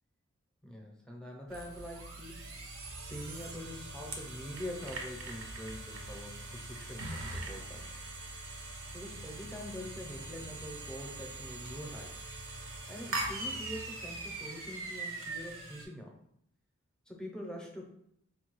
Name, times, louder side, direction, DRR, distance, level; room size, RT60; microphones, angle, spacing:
voice 1, 0.6-2.5 3.1-8.0 8.9-12.1 12.9-16.1 17.1-17.8, left 1 dB, 5° left, 0 dB, 0.6 m, -44 dB
sound 1, 1.5-15.8, right 2 dB, 70° right, 0.7 m, -42 dB
4.8 x 2.2 x 3.1 m, 0.73 s
head